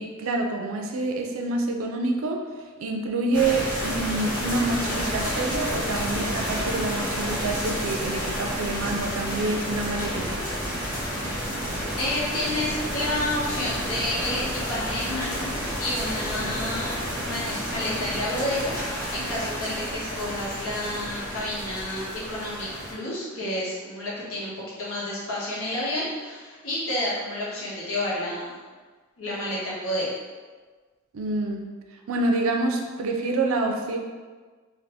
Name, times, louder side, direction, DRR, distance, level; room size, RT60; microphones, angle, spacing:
voice 1, 0.0-2.4 2.8-10.4 31.1-31.7 32.1-34.0, right 2 dB, 75° right, 3 dB, 0.4 m, -27 dB
sound 1, 3.3-22.9, equal, 10° left, 1.1 m, -30 dB
voice 2, 12.0-24.5 24.8-28.6 29.2-30.1, left 1 dB, 80° left, -7 dB, 1.1 m, -30 dB
2.6 x 2.5 x 3.3 m, 1.4 s
head